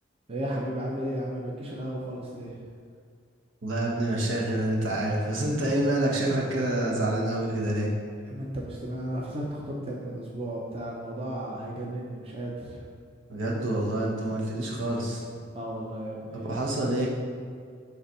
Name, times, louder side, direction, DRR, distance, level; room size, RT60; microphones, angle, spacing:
voice 1, 0.3-2.6 8.3-12.8 15.5-16.7, right 1 dB, 30° right, -3 dB, 0.8 m, -34 dB
voice 2, 3.6-7.9 13.3-15.3 16.3-17.1, right 1 dB, 75° right, -3 dB, 1.4 m, -27 dB
7.1 x 3.4 x 5.4 m, 2.2 s
head